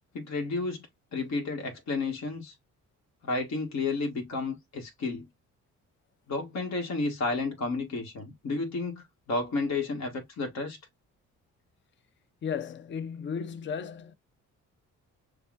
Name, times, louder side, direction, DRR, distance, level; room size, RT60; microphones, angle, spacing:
voice 1, 0.1-0.9 1.1-2.5 3.2-5.3 6.3-10.8, left 3 dB, 60° left, 1.6 m, -31 dB
voice 2, 12.4-14.1, left 6 dB, 40° left, 0.5 m, -35 dB
6.6 x 2.3 x 2.4 m
cardioid pair, 90°, 30 cm